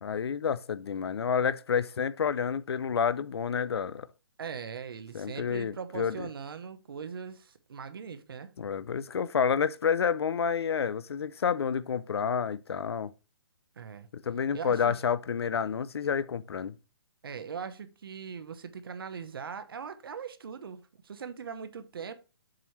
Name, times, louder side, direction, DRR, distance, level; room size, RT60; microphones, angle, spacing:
voice 1, 0.0-4.1 5.1-6.3 8.6-13.1 14.1-16.8, left 7 dB, 75° left, 0.6 m, -29 dB
voice 2, 4.4-8.5 13.8-14.1 14.5-14.9 17.2-22.1, right 6 dB, 60° right, 0.9 m, -40 dB
7.6 x 3.1 x 5.8 m
hypercardioid pair, 170°, 13 cm